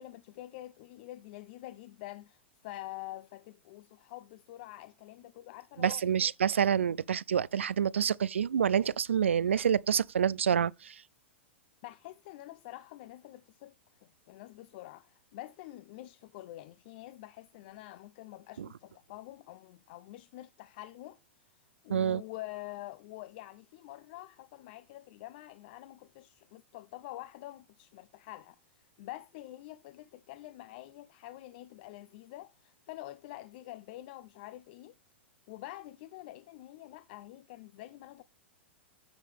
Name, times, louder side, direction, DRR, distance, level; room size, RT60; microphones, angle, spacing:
voice 1, 0.0-6.0 11.8-13.7 14.0-21.2 21.8-34.9 35.5-38.2, left 16 dB, 55° left, 0.6 m, -47 dB
voice 2, 5.8-11.0 18.6-18.7 21.9-22.2, right 8 dB, 85° right, 0.4 m, -27 dB
10.0 x 7.4 x 3.3 m
hypercardioid pair, 115°, 6 cm